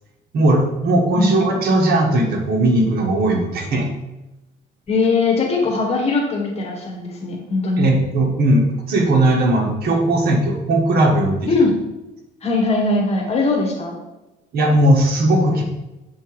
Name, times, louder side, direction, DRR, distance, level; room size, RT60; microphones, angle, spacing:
voice 1, 0.3-3.9 7.8-11.5 14.5-15.6, right 1 dB, 65° right, 0 dB, 1.4 m, -17 dB
voice 2, 4.9-7.9 11.5-11.7 12.4-14.0, left 3 dB, 40° left, 0 dB, 1.5 m, -20 dB
7.0 x 3.5 x 4.8 m, 1.0 s
cardioid pair, 110°, 17 cm